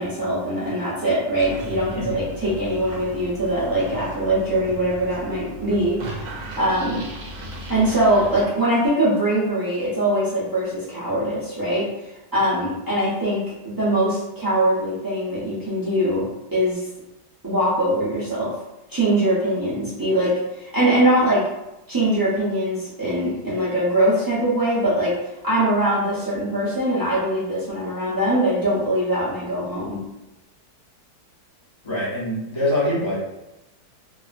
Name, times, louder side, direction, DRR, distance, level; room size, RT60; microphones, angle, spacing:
voice 1, 0.0-7.1 7.7-16.2 16.5-16.8 17.4-18.5 18.9-21.5 21.9-30.0, right 1 dB, 30° right, -11 dB, 0.4 m, -22 dB
sound 1, 1.4-8.5, right 1 dB, 70° right, 1.1 m, -36 dB
voice 2, 31.8-33.2, left 1 dB, 35° left, -9 dB, 0.4 m, -24 dB
2.7 x 2.4 x 2.4 m, 0.96 s
omnidirectional pair, 1.8 m